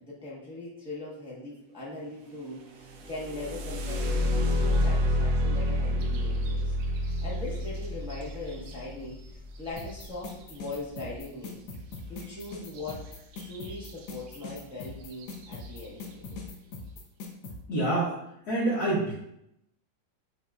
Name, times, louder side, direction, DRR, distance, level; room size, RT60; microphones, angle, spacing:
voice 1, 0.0-11.6 12.1-13.1 13.4-16.5, left 2 dB, 5° right, -8 dB, 0.6 m, -40 dB
sound 1, 2.9-10.7 12.8-12.9 13.3-13.9 14.5-14.6 15.1-15.5, left 1 dB, 70° right, 1.0 m, -29 dB
sound 2, 9.8-17.6, left 3 dB, 80° left, 1.4 m, -41 dB
voice 2, 17.7-18.1 18.5-19.1, right 2 dB, 60° left, -9 dB, 1.4 m, -26 dB
5.5 x 2.6 x 2.3 m, 0.80 s
omnidirectional pair, 2.0 m